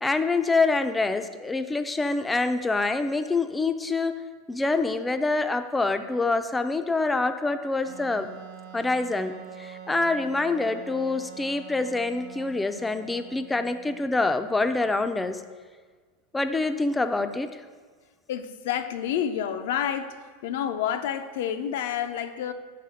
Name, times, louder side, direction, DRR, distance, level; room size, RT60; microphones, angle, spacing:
voice 1, 0.0-4.1 4.5-8.3 8.7-15.4 16.3-17.5, left 3 dB, 10° left, 9 dB, 0.4 m, -26 dB
Wind instrument woodwind instrument, 7.8-14.3, right 8 dB, 70° right, 0.9 m, -44 dB
voice 2, 18.3-20.2 20.4-22.5, left 9 dB, 75° left, 9 dB, 0.5 m, -29 dB
5.8 x 4.2 x 6.2 m, 1.5 s
supercardioid pair, 125°, 0 cm